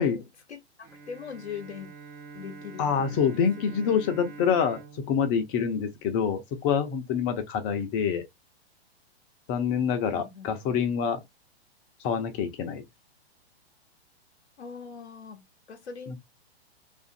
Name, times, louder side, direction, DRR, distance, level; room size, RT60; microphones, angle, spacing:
voice 1, 0.0-1.9 2.3-3.5 3.7-4.2 10.1-10.6 14.6-16.2, left 7 dB, 90° left, 0.8 m, -42 dB
Bowed string instrument, 0.8-6.5, right 4 dB, 30° right, 0.9 m, -46 dB
voice 2, 2.8-8.2 9.5-11.2 12.0-12.8 16.1-16.2, left 7 dB, 30° left, 0.6 m, -26 dB
2.5 x 2.4 x 2.5 m
hypercardioid pair, 120°, 33 cm